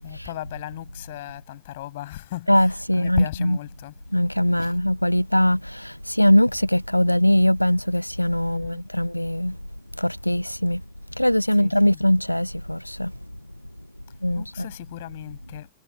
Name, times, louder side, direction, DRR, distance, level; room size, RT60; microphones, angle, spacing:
voice 1, 0.0-4.0 4.6-4.8 8.5-8.8 11.5-12.0 14.3-15.7, left 16 dB, 55° left, 7.5 m, -36 dB
voice 2, 2.5-3.2 4.1-9.5 10.0-10.8 11.2-13.1 14.2-14.4, left 1 dB, 90° left, 0.5 m, -21 dB
figure-of-eight pair, 90°, 0 cm